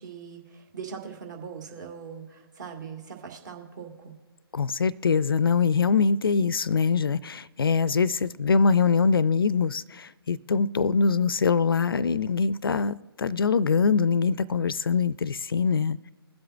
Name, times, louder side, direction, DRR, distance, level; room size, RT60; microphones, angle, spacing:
voice 1, 0.0-4.1, right 6 dB, 45° right, 1.8 m, -41 dB
voice 2, 4.5-16.1, left 5 dB, 65° left, 0.4 m, -23 dB
22.0 x 7.7 x 2.4 m
figure-of-eight pair, 135°, 13 cm